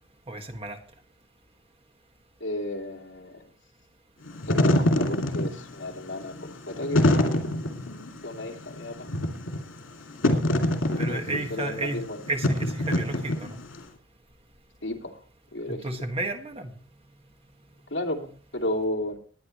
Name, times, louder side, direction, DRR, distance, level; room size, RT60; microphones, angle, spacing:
voice 1, 0.3-0.8 11.0-13.6 15.7-16.7, right 2 dB, 30° right, 4 dB, 1.8 m, -32 dB
voice 2, 2.4-3.5 4.5-7.5 8.2-9.1 11.1-11.2 11.5-12.2 14.8-15.2 15.5-15.8 17.9-19.2, left 1 dB, 65° left, 2 dB, 2.5 m, -33 dB
Wind / Fire, 4.3-13.8, left 1 dB, 90° left, 2.6 m, -25 dB
20.0 x 9.4 x 3.2 m, 0.41 s
head